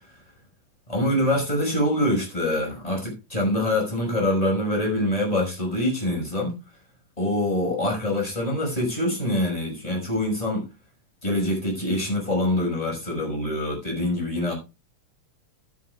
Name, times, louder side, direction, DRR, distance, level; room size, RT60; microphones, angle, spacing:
voice 1, 0.9-6.5 7.2-10.6 11.2-14.5, left 1 dB, 10° left, 5.6 m, -25 dB
13.0 x 12.5 x 2.4 m
omnidirectional pair, 3.7 m